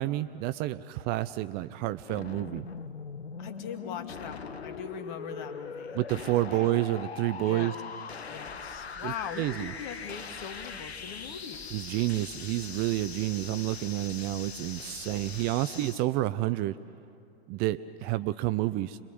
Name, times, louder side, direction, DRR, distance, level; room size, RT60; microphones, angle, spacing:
voice 1, 0.0-2.7 5.9-7.7 9.0-9.7 11.7-16.8 17.5-19.0, right 16 dB, 30° right, 14 dB, 0.5 m, -29 dB
sound 1, 2.1-16.0, left 6 dB, 80° left, 1.0 m, -41 dB
voice 2, 3.4-6.0 6.5-6.7 7.5-7.8 8.1-11.8, left 7 dB, 50° left, 7 dB, 2.3 m, -41 dB
sound 2, 8.4-15.5, left 1 dB, 25° left, 3.4 m, -53 dB
27.0 x 22.0 x 7.9 m, 2.4 s
figure-of-eight pair, 100°, 31 cm